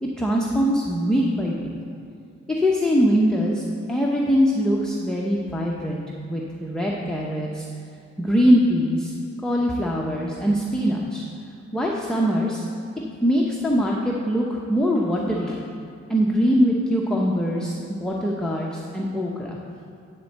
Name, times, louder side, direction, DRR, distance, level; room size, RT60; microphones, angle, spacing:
voice 1, 0.0-1.7 2.5-6.0 6.3-7.7 8.2-9.1 9.4-11.2 11.7-12.7 13.2-15.6 16.1-19.6, equal, ahead, -3 dB, 0.7 m, -22 dB
10.0 x 4.4 x 7.8 m, 2.4 s
cardioid pair, 120°, 29 cm